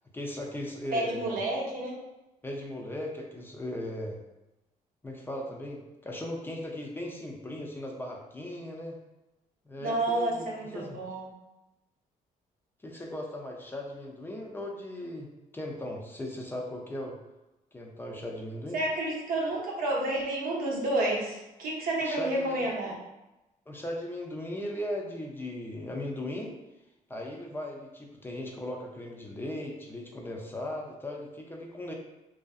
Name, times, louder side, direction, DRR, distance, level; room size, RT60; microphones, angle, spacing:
voice 1, 0.1-1.4 2.4-4.2 5.0-9.0 9.7-10.5 10.7-11.0 12.8-17.2 17.7-18.8 22.0-22.7 23.7-26.5 27.1-31.9, left 1 dB, 15° left, 0 dB, 0.4 m, -37 dB
voice 2, 0.9-1.9 9.8-11.3 18.7-23.0, right 1 dB, 80° right, -2 dB, 0.7 m, -30 dB
2.5 x 2.4 x 2.3 m, 0.98 s
cardioid pair, 105°, 15 cm